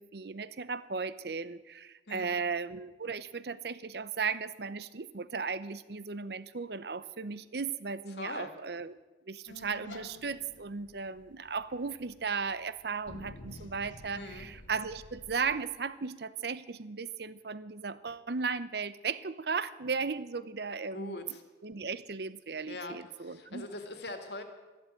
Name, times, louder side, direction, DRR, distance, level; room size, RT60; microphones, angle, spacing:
voice 1, 0.0-8.9 9.3-21.4 21.6-23.7, right 5 dB, 60° right, 15 dB, 0.7 m, -36 dB
voice 2, 8.1-8.5 14.2-14.5 20.9-21.4 22.7-24.4, left 2 dB, 65° left, 6 dB, 2.1 m, -42 dB
sound 1, 9.5-15.6, left 1 dB, 85° left, 1.3 m, -51 dB
13.5 x 12.0 x 9.0 m, 1.2 s
head